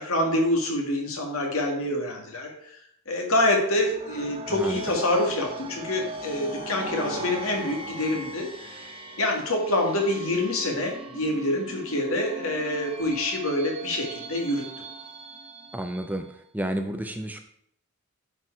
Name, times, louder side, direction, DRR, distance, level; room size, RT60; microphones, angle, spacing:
voice 1, 0.0-2.5 3.1-8.8 9.2-14.6, left 1 dB, 75° left, 2 dB, 1.8 m, -26 dB
sound 1, 3.8-16.3, right 2 dB, 25° right, 0.8 m, -39 dB
voice 2, 4.5-4.8 15.7-16.2 16.5-17.4, right 1 dB, 10° right, 6 dB, 0.4 m, -30 dB
9.6 x 4.6 x 4.5 m, 0.69 s
head